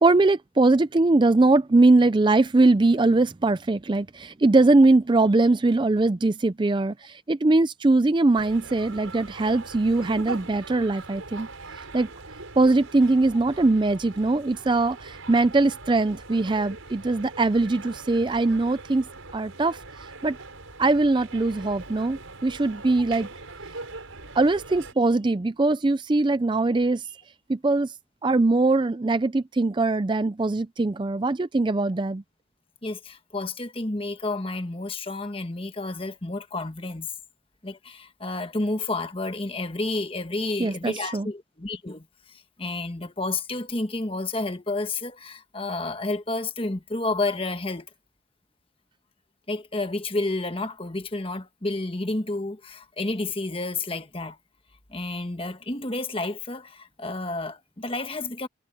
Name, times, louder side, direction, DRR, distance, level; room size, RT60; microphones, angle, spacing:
voice 1, 0.0-11.5 11.9-12.1 12.6-19.0 19.3-19.8 20.2-20.4 20.8-23.3 24.4-27.0 27.5-27.9 28.2-32.2 40.6-41.3, right 2 dB, 25° right, 0.4 m, -21 dB
sound 1, 8.3-24.9, right 3 dB, 90° right, 6.4 m, -41 dB
voice 2, 32.8-37.1 37.6-47.9 49.5-54.4 54.9-58.5, left 2 dB, 25° left, 1.2 m, -30 dB
head